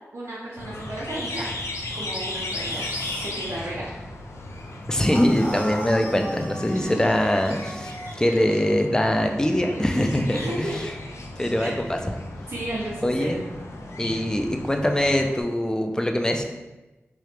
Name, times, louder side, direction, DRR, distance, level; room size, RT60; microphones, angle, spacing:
voice 1, 0.1-1.5 1.9-2.9 3.1-3.8 6.8-7.0 10.3-10.9 11.6-11.8 12.5-13.4, right 1 dB, 85° right, -8 dB, 0.6 m, -33 dB
sound 1, 0.6-15.4, left 2 dB, 85° left, 0.3 m, -36 dB
sound 2, 2.6-3.4 5.1-8.2, equal, 30° left, 1.1 m, -37 dB
voice 2, 4.9-10.9 11.4-12.0 13.0-13.4 14.0-16.4, left 1 dB, 15° left, 4 dB, 0.4 m, -23 dB
3.0 x 2.4 x 3.1 m, 1.1 s
cardioid pair, 45°, 5 cm